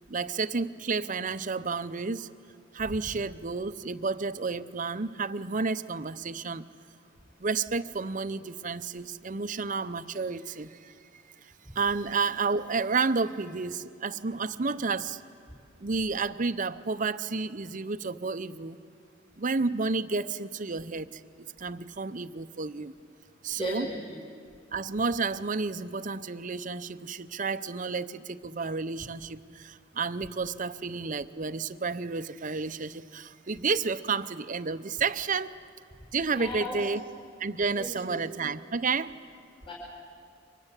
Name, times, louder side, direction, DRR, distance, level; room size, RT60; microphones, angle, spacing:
voice 1, 0.1-2.3 2.7-6.6 7.4-10.9 11.4-15.2 15.8-18.8 19.4-22.9 23.4-23.9 24.7-35.5 36.1-37.0 37.4-39.1, right 4 dB, 40° right, 12 dB, 0.7 m, -31 dB
voice 2, 23.5-24.2 36.3-36.8 37.8-38.2 39.7-39.8, left 1 dB, 25° left, -3 dB, 5.2 m, -36 dB
29.5 x 24.5 x 8.2 m, 2.4 s
head